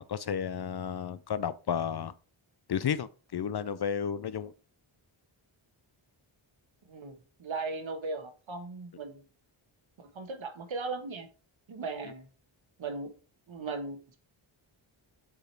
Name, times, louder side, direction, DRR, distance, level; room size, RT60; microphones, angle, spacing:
voice 1, 0.0-2.1 2.7-4.5 12.0-12.1, left 8 dB, 50° left, 0.5 m, -32 dB
voice 2, 6.9-9.2 10.0-11.3 11.7-12.3 12.8-13.1 13.5-14.2, right 3 dB, 65° right, 1.5 m, -37 dB
7.5 x 5.0 x 4.6 m
wide cardioid pair, 145°, 50 cm